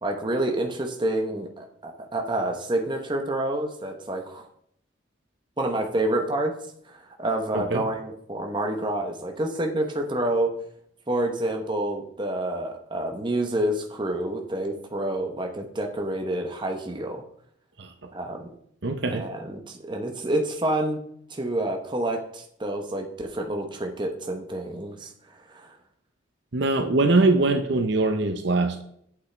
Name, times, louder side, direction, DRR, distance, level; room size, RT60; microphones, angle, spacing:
voice 1, 0.0-4.5 5.6-6.5 6.9-10.5 11.1-17.2 18.1-18.5 19.1-21.0 21.3-25.1 25.5-25.7, right 1 dB, 25° right, 3 dB, 0.9 m, -28 dB
voice 2, 18.8-19.3 26.5-28.8, right 2 dB, 55° right, 6 dB, 0.7 m, -22 dB
8.8 x 8.3 x 3.4 m, 0.70 s
head